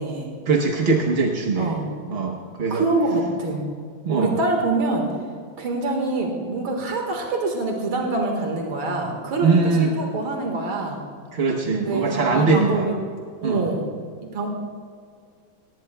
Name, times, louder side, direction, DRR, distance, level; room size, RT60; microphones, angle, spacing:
voice 1, 0.5-1.8 2.1-2.8 4.0-4.4 9.4-10.0 11.3-12.9 13.4-13.7, right 4 dB, 45° right, 1 dB, 0.8 m, -21 dB
voice 2, 1.6-1.9 2.7-3.6 4.1-5.1 5.6-11.0 11.7-12.9 13.4-13.9 14.2-14.5, right 2 dB, 85° right, 1 dB, 2.5 m, -25 dB
19.0 x 16.5 x 2.3 m, 2.1 s
omnidirectional pair, 2.2 m